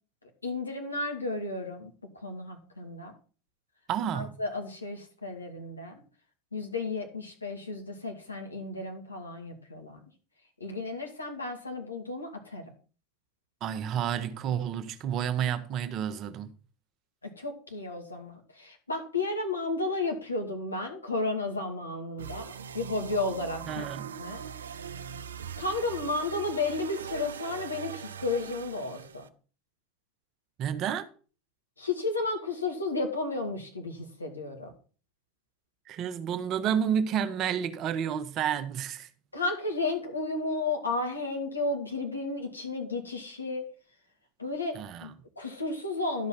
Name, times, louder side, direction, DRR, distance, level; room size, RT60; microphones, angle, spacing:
voice 1, 0.4-3.1 4.1-6.0 6.5-10.0 10.6-12.6 17.2-23.9 24.2-24.4 25.6-29.2 31.8-34.7 39.3-43.6 44.4-46.3, left 3 dB, 85° left, 2.3 m, -33 dB
voice 2, 3.9-4.4 13.6-16.5 23.7-24.2 30.6-31.1 35.9-39.1 44.7-45.1, right 8 dB, 40° right, 1.1 m, -30 dB
sound 1, 22.2-29.3, right 7 dB, 75° right, 0.6 m, -41 dB
12.0 x 5.5 x 5.7 m
figure-of-eight pair, 80°, 0 cm